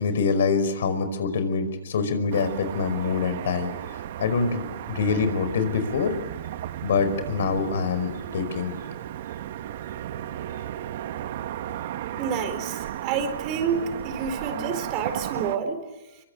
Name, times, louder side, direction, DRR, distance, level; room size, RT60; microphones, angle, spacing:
voice 1, 0.0-3.7 4.2-6.1 6.8-8.8, left 5 dB, 65° left, 10 dB, 5.3 m, -25 dB
Car passing by / Traffic noise roadway noise, 2.3-15.6, right 11 dB, 55° right, 1.4 m, -34 dB
voice 2, 12.2-15.8, right 6 dB, 35° right, 9 dB, 4.3 m, -29 dB
26.5 x 24.5 x 8.7 m, 1.0 s
hypercardioid pair, 145°, 0 cm